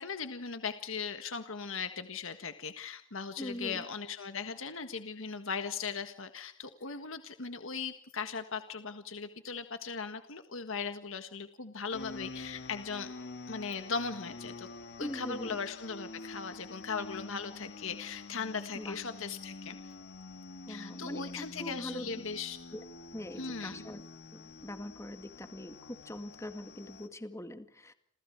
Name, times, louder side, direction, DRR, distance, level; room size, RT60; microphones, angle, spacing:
voice 1, 0.0-13.1 13.5-14.7 15.0-19.9 20.7-22.6 23.4-23.8, left 5 dB, 70° left, 8 dB, 1.6 m, -38 dB
voice 2, 3.4-3.8 15.0-15.6 18.7-19.0 20.7-22.1 22.7-22.8 23.1-24.0 24.3-27.9, left 1 dB, 15° left, 8 dB, 2.1 m, -42 dB
sound 1, 11.9-27.1, left 3 dB, 55° left, 1.9 m, -47 dB
29.0 x 28.0 x 4.7 m, 0.66 s
head